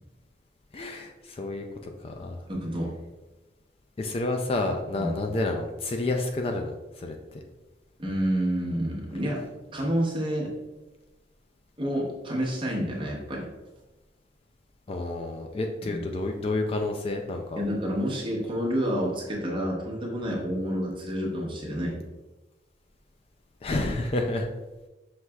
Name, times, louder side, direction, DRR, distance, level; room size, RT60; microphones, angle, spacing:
voice 1, 0.7-2.4 4.0-7.4 14.9-17.6 23.6-24.5, left 2 dB, 35° left, 3 dB, 0.3 m, -30 dB
voice 2, 2.5-2.9 4.9-5.1 8.0-9.4 9.7-10.5 11.8-13.5 15.9-16.0 17.6-22.0, equal, 30° right, -3 dB, 0.9 m, -29 dB
5.8 x 3.2 x 2.3 m, 1.1 s
head